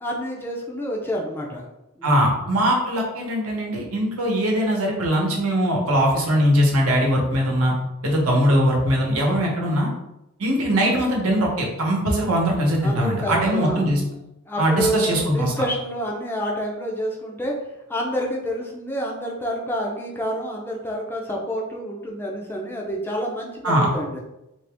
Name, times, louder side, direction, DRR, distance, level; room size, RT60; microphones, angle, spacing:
voice 1, 0.0-1.7 2.0-2.3 12.8-13.9 14.5-17.5 17.9-24.2, equal, 10° left, -2 dB, 0.4 m, -28 dB
voice 2, 2.0-7.7 8.0-9.9 10.4-14.0 14.6-15.5 23.6-23.9, equal, 80° right, -1 dB, 0.9 m, -21 dB
2.9 x 2.6 x 3.4 m, 0.90 s
head